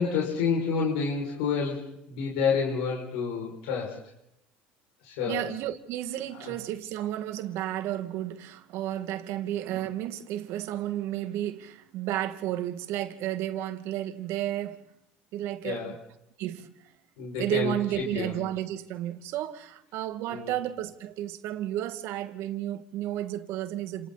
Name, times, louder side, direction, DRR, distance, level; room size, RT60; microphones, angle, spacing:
voice 1, 0.0-4.0 5.0-5.4 6.4-6.5 15.6-15.9 17.2-17.7 18.1-18.3 20.3-20.5, left 5 dB, 80° left, 6.4 m, -29 dB
voice 2, 5.3-14.8 15.3-16.0 16.4-16.7 17.4-24.1, right 12 dB, 65° right, 2.3 m, -32 dB
30.0 x 28.5 x 4.3 m
supercardioid pair, 85°, 5 cm